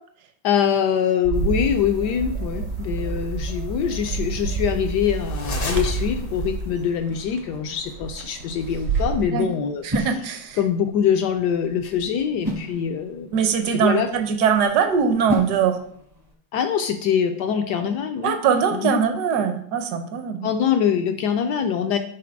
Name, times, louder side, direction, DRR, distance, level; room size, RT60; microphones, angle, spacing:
voice 1, 0.4-10.1 10.6-13.3 13.7-14.1 16.5-18.3 18.7-19.0 20.4-22.0, left 8 dB, 75° left, 6 dB, 0.9 m, -24 dB
Bird, 1.2-9.2, right 5 dB, 90° right, 0.6 m, -29 dB
sound 1, 1.3-6.9, left 3 dB, 60° left, 0.5 m, -33 dB
sound 2, 7.1-16.3, equal, 25° right, 0.5 m, -35 dB
voice 2, 9.8-10.6 13.3-15.8 18.2-20.5, right 7 dB, 65° right, 8 dB, 1.1 m, -21 dB
4.9 x 3.8 x 5.8 m, 0.65 s
omnidirectional pair, 2.2 m